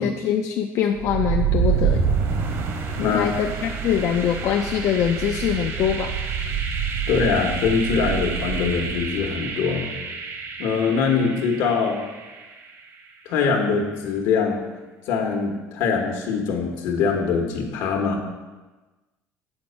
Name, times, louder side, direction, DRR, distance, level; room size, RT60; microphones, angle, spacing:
voice 1, 0.0-2.0 3.0-6.2, left 9 dB, 55° left, 3 dB, 0.5 m, -23 dB
sound 1, 1.0-12.8, right 6 dB, 50° right, 1.1 m, -27 dB
voice 2, 2.9-3.3 7.1-9.8 10.6-12.0 13.2-14.6 15.1-18.2, left 5 dB, 80° left, 2 dB, 1.5 m, -23 dB
8.0 x 4.3 x 7.0 m, 1.2 s
cardioid pair, 135°, 6 cm